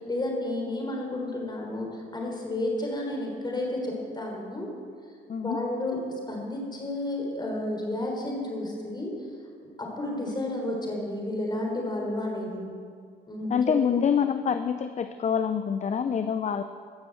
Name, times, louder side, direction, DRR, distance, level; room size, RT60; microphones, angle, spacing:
voice 1, 0.0-4.7 5.4-6.0 6.3-9.1 9.6-12.7 13.3-14.0, left 1 dB, 20° left, 0 dB, 3.8 m, -31 dB
voice 2, 13.5-16.6, left 7 dB, 35° left, 10 dB, 0.6 m, -26 dB
15.5 x 6.8 x 7.8 m, 2.1 s
cardioid pair, 90°, 20 cm